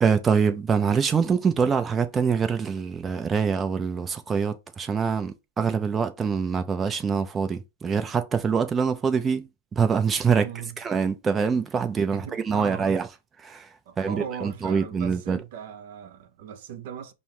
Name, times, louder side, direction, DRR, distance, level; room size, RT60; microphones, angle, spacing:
voice 1, 0.0-10.5 10.8-13.1 13.4-15.4, right 6 dB, 20° right, 0.5 m, -25 dB
voice 2, 10.4-10.8 12.1-12.9 13.9-17.1, right 8 dB, 60° right, 0.6 m, -38 dB
5.4 x 2.0 x 3.2 m
hypercardioid pair, 120°, 0 cm